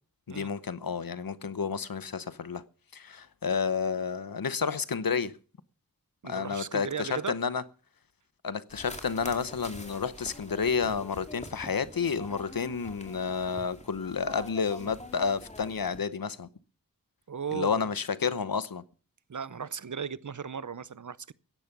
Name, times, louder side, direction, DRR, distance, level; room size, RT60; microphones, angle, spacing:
voice 1, 0.3-2.6 2.9-5.4 6.2-7.6 8.4-16.5 17.5-18.8, left 6 dB, 85° left, 0.9 m, -30 dB
voice 2, 6.2-7.3 17.3-17.9 19.3-21.3, right 7 dB, 60° right, 0.7 m, -36 dB
sound 1, 8.7-16.0, left 1 dB, 20° left, 2.5 m, -45 dB
16.0 x 10.5 x 5.9 m
wide cardioid pair, 55°, 34 cm